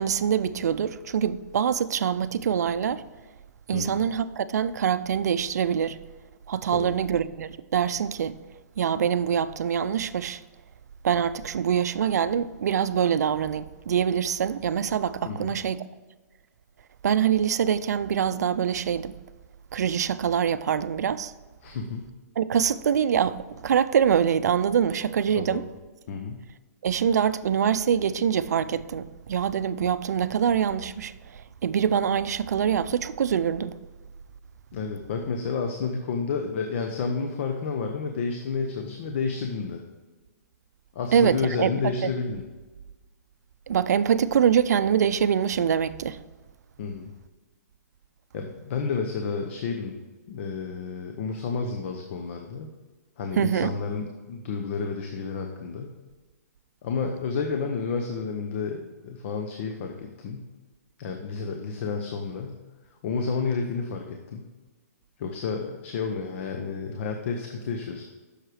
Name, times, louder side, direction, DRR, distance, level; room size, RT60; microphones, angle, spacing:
voice 1, 0.0-3.0 3.7-6.0 6.5-8.4 8.8-10.4 11.0-15.8 17.0-19.2 19.7-21.3 22.4-25.6 26.8-33.7 41.1-42.1 43.7-46.2 53.4-53.7, right 8 dB, 75° right, 0.4 m, -24 dB
voice 2, 21.6-22.0 25.3-25.6 26.1-26.4 34.7-39.8 40.9-42.4 46.8-47.1 48.3-50.0 50.3-52.7 53.2-55.9 56.8-60.4 61.0-62.6 63.0-64.4 65.2-68.0, left 5 dB, 50° left, 0.8 m, -30 dB
7.8 x 6.6 x 4.8 m
hypercardioid pair, 150°, 9 cm